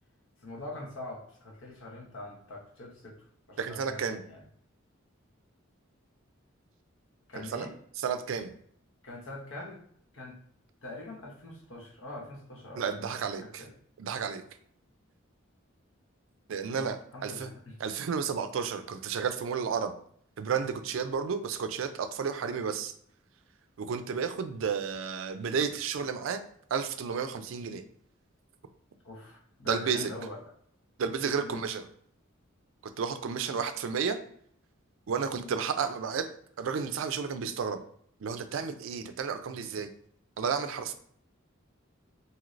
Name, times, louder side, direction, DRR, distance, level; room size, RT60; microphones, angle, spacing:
voice 1, 0.4-3.1 3.5-4.4 7.3-7.7 9.0-9.8 10.1-10.3 10.8-12.8 13.4-13.7 16.7-16.9 17.1-17.8 29.0-30.4 31.4-31.6, left 2 dB, 75° left, -2 dB, 0.9 m, -43 dB
voice 2, 3.6-4.2 7.4-7.7 8.0-8.5 12.8-13.6 14.0-14.4 16.5-17.5 17.8-19.9 20.4-22.9 23.8-26.4 26.7-27.8 29.6-30.1 31.0-31.9 33.0-34.2 35.1-36.3 36.6-37.8 38.2-39.9 40.4-40.9, right 6 dB, 70° right, 9 dB, 0.4 m, -32 dB
3.1 x 2.7 x 2.5 m, 0.64 s
head